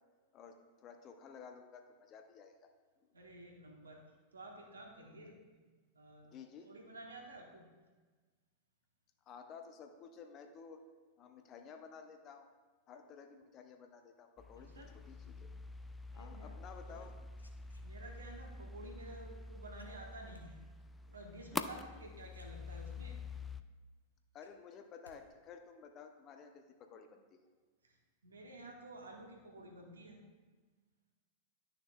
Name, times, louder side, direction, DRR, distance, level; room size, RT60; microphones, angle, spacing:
voice 1, 0.3-2.7 5.1-5.3 6.2-6.7 9.3-10.8 11.2-12.5 12.9-15.5 16.1-17.1 21.5-22.0 24.3-27.4, left 6 dB, 35° left, 6 dB, 0.7 m, -54 dB
voice 2, 3.1-4.0 4.3-5.3 5.9-6.3 6.6-7.6 14.7-14.9 16.1-16.5 16.9-17.1 17.8-20.6 21.1-23.2 27.8-28.0 28.2-30.2, right 1 dB, 75° right, 0 dB, 1.2 m, -52 dB
sound 1, 14.4-23.6, left 3 dB, 10° left, 0.3 m, -47 dB
sound 2, 17.0-18.3 19.8-20.5 21.9-22.0 22.3-23.1 23.5-23.6 23.9-25.2 25.5-25.9, left 1 dB, 85° left, 0.6 m, -66 dB
11.0 x 6.5 x 2.3 m, 1.4 s
figure-of-eight pair, 90°, 0 cm